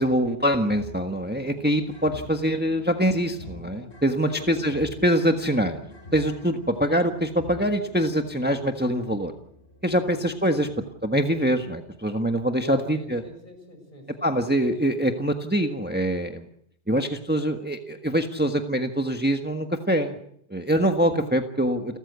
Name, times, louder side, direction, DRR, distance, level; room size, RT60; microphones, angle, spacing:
voice 1, 0.0-5.8 6.1-9.3 9.8-10.7 11.0-13.2 14.2-16.4 16.9-20.1 20.5-22.0, equal, 10° right, 5 dB, 1.4 m, -24 dB
sound 1, 0.7-13.4, left 1 dB, 85° left, 5.2 m, -46 dB
voice 2, 4.2-4.9 10.0-10.3 10.6-10.7 12.6-14.3 14.6-15.1 21.1-21.3, equal, 50° left, 4 dB, 7.1 m, -42 dB
30.0 x 14.0 x 8.2 m, 0.70 s
omnidirectional pair, 1.1 m